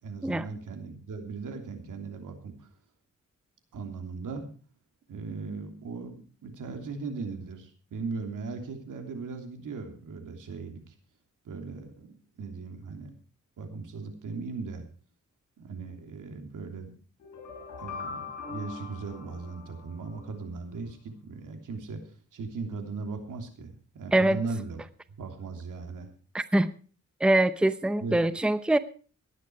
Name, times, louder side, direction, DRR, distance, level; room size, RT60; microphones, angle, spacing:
voice 1, 0.0-2.7 3.7-4.5 5.1-10.9 11.4-13.1 13.6-14.9 15.6-16.9 17.8-24.8 25.2-26.1 28.0-28.2, right 4 dB, 85° right, 5 dB, 3.2 m, -38 dB
sound 1, 17.2-20.3, left 4 dB, 70° left, 7.4 m, -41 dB
voice 2, 24.1-24.4 26.3-26.7 27.2-28.8, right 1 dB, 5° right, 13 dB, 0.7 m, -23 dB
17.0 x 11.5 x 4.7 m, 0.39 s
cardioid pair, 100°, 30 cm